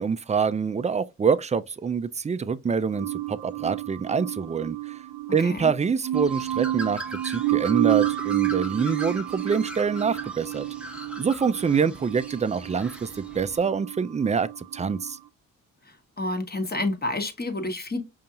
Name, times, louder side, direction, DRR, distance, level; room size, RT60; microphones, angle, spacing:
voice 1, 0.0-4.9 5.3-10.7 11.2-15.2, right 6 dB, 20° right, 0.4 m, -26 dB
sound 1, 2.9-15.2, right 16 dB, 75° right, 0.6 m, -30 dB
voice 2, 5.4-5.7 15.8-18.0, left 2 dB, 30° left, 1.1 m, -29 dB
Bird, 6.1-13.6, equal, 5° right, 1.0 m, -40 dB
5.3 x 2.8 x 2.4 m
cardioid pair, 70°, 34 cm